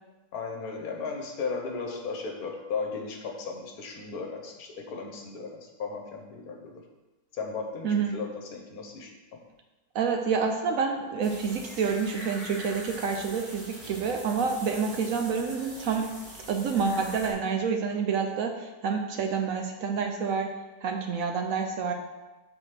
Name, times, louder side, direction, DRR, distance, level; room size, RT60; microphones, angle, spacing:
voice 1, 0.3-6.8 7.3-9.4, left 4 dB, 70° left, 3 dB, 1.3 m, -36 dB
voice 2, 7.8-8.2 9.9-16.1 16.5-20.5 20.8-21.9, right 5 dB, 70° right, 4 dB, 0.9 m, -28 dB
sound 1, 11.2-17.3, equal, 30° right, 1.7 m, -43 dB
4.8 x 4.4 x 5.7 m, 1.1 s
omnidirectional pair, 1.7 m